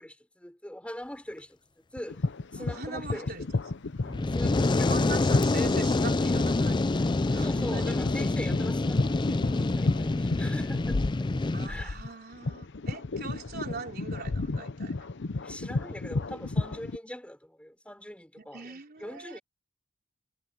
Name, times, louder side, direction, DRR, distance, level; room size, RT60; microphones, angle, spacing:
voice 1, 0.0-1.6 1.9-2.2 2.5-3.5 4.0-5.1 7.4-11.3 11.7-12.0 15.4-19.4, left 1 dB, 5° left, 4.5 m, -42 dB
sound 1, 2.0-17.0, left 3 dB, 65° left, 0.8 m, -33 dB
voice 2, 2.6-3.4 4.9-8.0 11.5-14.9 18.5-19.4, right 4 dB, 50° right, 4.3 m, -41 dB
Fire, 4.0-11.7, left 2 dB, 25° left, 0.4 m, -26 dB
head